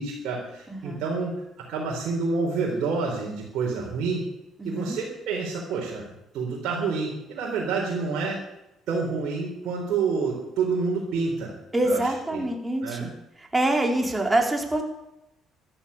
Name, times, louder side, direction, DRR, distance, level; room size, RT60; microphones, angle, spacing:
voice 1, 0.0-1.3 1.7-4.2 4.6-6.1 6.3-8.4 8.9-11.5 11.8-12.0 12.3-12.4 12.8-13.0, right 4 dB, 65° right, -2 dB, 3.9 m, -28 dB
voice 2, 0.7-1.0 4.6-5.0 11.7-13.1 13.4-14.8, right 1 dB, 15° right, 2 dB, 4.3 m, -25 dB
14.0 x 12.5 x 7.0 m, 0.88 s
hypercardioid pair, 55°, 0 cm